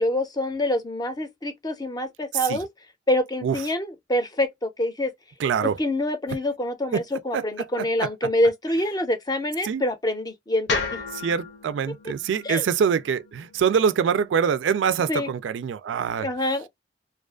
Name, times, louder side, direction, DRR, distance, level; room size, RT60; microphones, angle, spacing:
voice 1, 0.0-2.7 3.1-5.1 5.6-11.0 12.4-12.6 15.1-15.3 16.2-16.7, left 1 dB, 20° left, 0.5 m, -26 dB
voice 2, 5.4-5.8 6.9-7.0 7.3-8.3 9.6-9.8 11.2-16.3, right 7 dB, 80° right, 0.3 m, -24 dB
sound 1, 10.7-14.8, left 4 dB, 70° left, 0.6 m, -34 dB
2.4 x 2.3 x 2.2 m
head